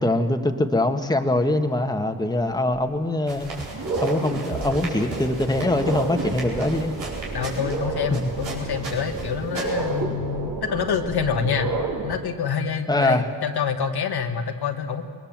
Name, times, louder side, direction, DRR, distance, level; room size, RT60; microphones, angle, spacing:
voice 1, 0.0-3.5 4.0-6.9 8.1-8.3 12.9-13.2, left 1 dB, 10° left, 5 dB, 1.6 m, -23 dB
sound 1, 2.7-2.8 3.3-12.1, right 3 dB, 55° right, 3.2 m, -30 dB
sound 2, 3.3-10.0, right 3 dB, 85° right, 4.8 m, -37 dB
voice 2, 7.3-11.8 12.0-15.0, left 6 dB, 65° left, 5 dB, 1.5 m, -27 dB
20.5 x 20.5 x 7.5 m, 2.2 s
supercardioid pair, 55°, 42 cm